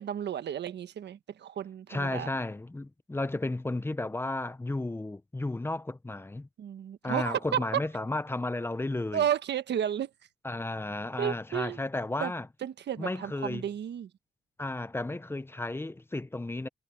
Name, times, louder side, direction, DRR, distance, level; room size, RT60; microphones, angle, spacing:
voice 1, 0.0-2.3 6.6-7.7 9.1-10.1 11.2-11.8 12.2-12.3 12.6-14.1, right 9 dB, 60° right, 1.4 m, -32 dB
voice 2, 1.9-6.5 7.0-9.3 10.4-12.5 13.0-13.7 14.6-16.7, left 2 dB, 10° left, 0.8 m, -33 dB
cardioid pair, 90°, 20 cm